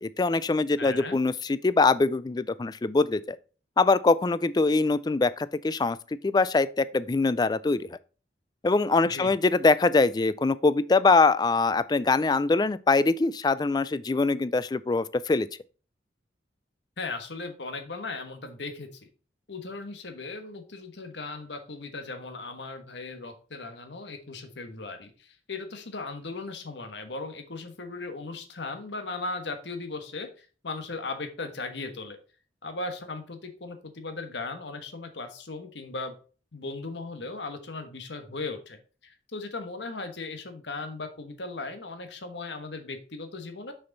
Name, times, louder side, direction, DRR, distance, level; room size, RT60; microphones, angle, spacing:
voice 1, 0.0-3.4 3.8-6.0 6.2-7.8 8.6-15.5, left 3 dB, 25° left, 0.3 m, -23 dB
voice 2, 0.8-1.2 9.0-9.4 17.0-19.1 19.5-32.2 32.6-36.2 36.5-43.7, left 3 dB, 80° left, 1.3 m, -37 dB
6.4 x 6.1 x 3.9 m
head